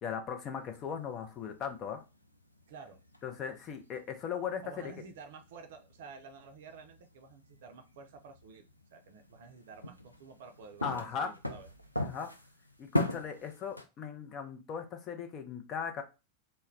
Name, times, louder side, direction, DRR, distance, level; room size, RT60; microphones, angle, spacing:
voice 1, 0.0-2.0 3.2-4.9 10.8-11.3 12.0-12.3 12.8-16.0, left 7 dB, 30° left, 6 dB, 0.5 m, -38 dB
sound 1, 0.5-13.9, left 1 dB, 90° left, 0.3 m, -42 dB
voice 2, 2.7-3.0 4.6-11.7, right 5 dB, 55° right, 7 dB, 0.4 m, -51 dB
2.2 x 2.1 x 3.5 m, 0.28 s
figure-of-eight pair, 90°, 0 cm